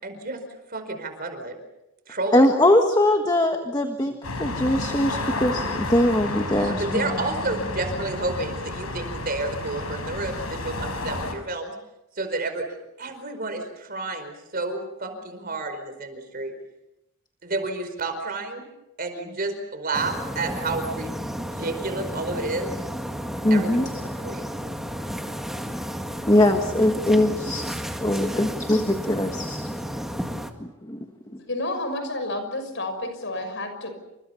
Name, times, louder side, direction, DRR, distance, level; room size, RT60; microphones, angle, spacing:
voice 1, 0.0-0.4 0.7-1.5 2.1-2.5 6.5-11.7 12.1-12.7 13.0-16.5 17.4-18.7 19.0-22.7 23.5-24.5, right 2 dB, 45° right, 7 dB, 4.9 m, -30 dB
voice 2, 2.3-4.1 4.4-7.1 23.4-23.8 26.3-27.7 28.0-29.7 30.6-31.0 31.3-31.4, left 1 dB, 20° left, 5 dB, 1.5 m, -21 dB
sound 1, 4.2-11.3, left 2 dB, 80° left, 6.0 m, -31 dB
sound 2, 19.9-30.5, equal, ahead, 2.0 m, -32 dB
voice 3, 31.5-34.0, left 2 dB, 55° left, 8 dB, 6.2 m, -30 dB
29.5 x 27.0 x 5.8 m, 0.92 s
head